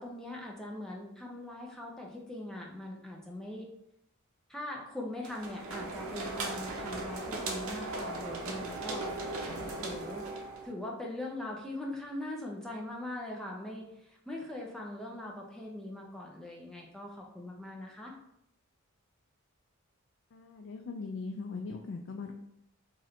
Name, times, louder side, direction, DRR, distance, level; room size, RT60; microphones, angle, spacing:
voice 1, 0.0-3.7 4.5-9.1 9.8-10.3 10.6-18.1, left 1 dB, ahead, -2 dB, 0.5 m, -41 dB
sound 1, 5.2-10.7, right 2 dB, 75° right, 0.6 m, -38 dB
voice 2, 20.3-22.3, left 4 dB, 55° left, 3 dB, 0.3 m, -40 dB
3.1 x 2.5 x 4.2 m, 0.78 s
head